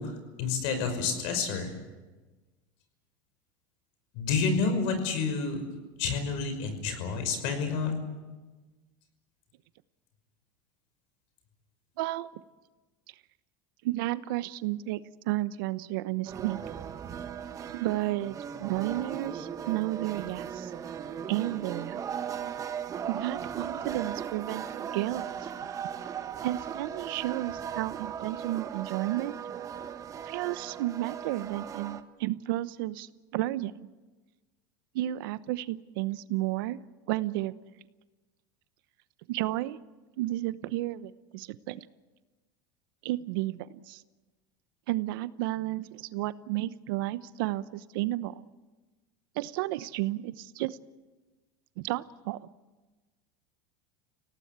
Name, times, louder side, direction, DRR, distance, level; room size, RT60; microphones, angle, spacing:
voice 1, 0.0-1.7 4.1-5.6 6.0-8.0, left 5 dB, 65° left, 8 dB, 5.6 m, -29 dB
voice 2, 12.0-12.3 13.8-16.6 17.8-20.7 21.3-22.0 23.1-25.5 26.4-29.4 30.2-33.7 34.9-36.8 37.1-37.5 39.3-39.8 40.2-41.9 43.0-44.0 44.9-48.4 49.3-50.8 51.8-52.5, right 16 dB, 75° right, 15 dB, 0.9 m, -32 dB
sound 1, 16.3-32.0, right 8 dB, 30° right, 1.2 m, -38 dB
28.5 x 17.5 x 8.2 m, 1.2 s
supercardioid pair, 130°, 12 cm